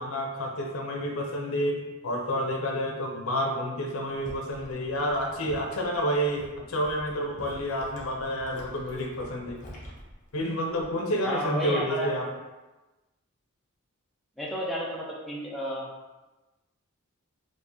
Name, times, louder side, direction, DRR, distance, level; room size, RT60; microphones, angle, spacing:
voice 1, 0.0-9.6 10.3-12.3, equal, 75° left, 1 dB, 0.7 m, -29 dB
sound 1, 4.1-11.1 11.4-11.8, equal, 35° left, 0.8 m, -47 dB
voice 2, 11.2-12.1 14.4-15.9, equal, ahead, -5 dB, 0.5 m, -32 dB
4.6 x 2.5 x 2.8 m, 1.1 s
head